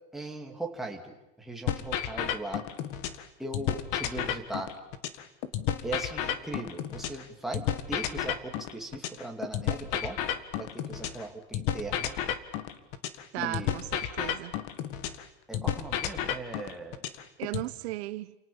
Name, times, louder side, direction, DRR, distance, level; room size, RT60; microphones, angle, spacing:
voice 1, 0.1-2.6 3.4-4.7 5.8-10.2 10.6-12.2 13.4-13.8 15.5-17.0, right 2 dB, ahead, 2.7 m, -39 dB
sound 1, 1.7-3.2 3.5-7.2 7.5-11.2 11.5-15.2 15.5-17.7, left 10 dB, 40° left, 1.9 m, -32 dB
voice 2, 13.3-14.5 17.4-18.4, right 18 dB, 60° right, 1.0 m, -36 dB
29.5 x 28.0 x 7.2 m
supercardioid pair, 175°, 36 cm